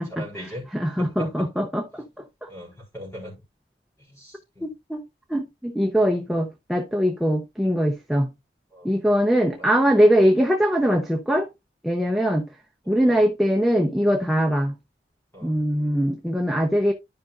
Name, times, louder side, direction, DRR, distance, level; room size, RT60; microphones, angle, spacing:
voice 1, 0.0-0.7 1.0-1.5 2.5-3.3 4.1-4.7 8.7-8.9 9.6-9.7 13.0-13.2 15.3-15.6, equal, 15° left, 4.0 m, -39 dB
voice 2, 0.7-2.0 2.4-2.5 4.6-5.0 5.3-8.3 8.8-11.5 11.8-12.5 12.9-14.7 15.4-16.9, equal, ahead, 0.7 m, -22 dB
12.5 x 5.2 x 2.4 m
head